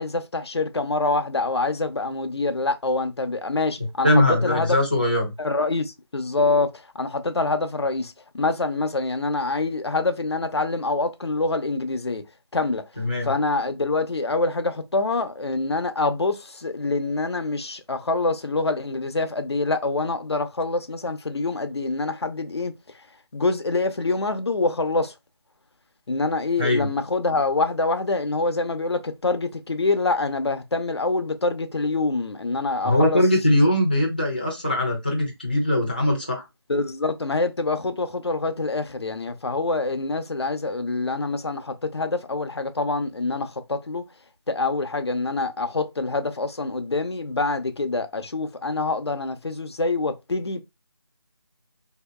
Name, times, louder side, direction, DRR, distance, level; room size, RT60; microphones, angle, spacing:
voice 1, 0.0-4.8 5.4-12.2 12.5-12.8 13.2-23.1 23.3-25.1 26.1-33.2 36.7-44.0 44.5-50.6, left 3 dB, 70° left, 0.6 m, -25 dB
voice 2, 4.0-5.3 13.0-13.3 26.6-26.9 32.8-36.4, left 1 dB, 20° left, 0.5 m, -21 dB
3.3 x 2.8 x 2.2 m
figure-of-eight pair, 180°, 14 cm